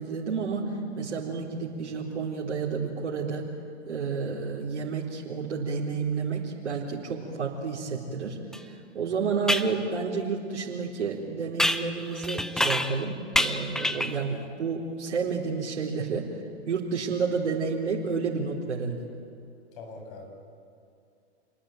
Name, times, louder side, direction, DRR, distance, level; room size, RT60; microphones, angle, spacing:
voice 1, 0.0-3.5 3.9-16.3 16.7-19.0, right 5 dB, 75° right, -3 dB, 4.0 m, -30 dB
sound 1, 8.5-8.6 9.5-9.7 11.6-13.0 13.3-14.2, left 1 dB, ahead, 0.6 m, -27 dB
voice 2, 19.7-20.2, left 3 dB, 50° left, 3 dB, 7.6 m, -42 dB
28.0 x 20.5 x 9.2 m, 2.5 s
hypercardioid pair, 130°, 34 cm